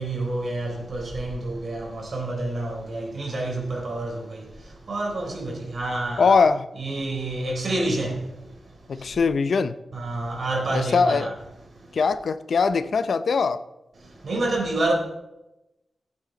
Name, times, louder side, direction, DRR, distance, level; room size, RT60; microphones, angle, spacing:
voice 1, 0.0-4.2 4.9-6.4 6.7-8.2 9.9-11.3 14.2-14.9, right 2 dB, 55° right, 3.9 m, -28 dB
voice 2, 6.2-6.7 8.9-9.7 10.7-11.3 11.9-13.6, left 5 dB, 70° left, 0.6 m, -21 dB
16.5 x 8.7 x 4.0 m
wide cardioid pair, 125°, 0 cm